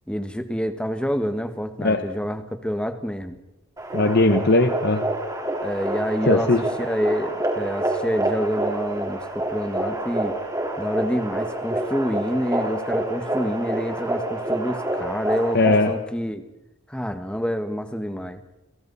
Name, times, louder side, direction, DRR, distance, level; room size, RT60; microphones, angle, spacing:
voice 1, 0.1-3.4 5.6-10.4 10.8-16.4 16.9-18.4, equal, 5° left, 8 dB, 1.6 m, -27 dB
sound 1, 3.8-15.9, right 1 dB, 15° right, 4.0 m, -27 dB
voice 2, 3.9-5.0 6.3-6.6 15.5-15.9, left 2 dB, 50° left, 7 dB, 1.2 m, -19 dB
29.0 x 28.5 x 4.2 m, 0.94 s
head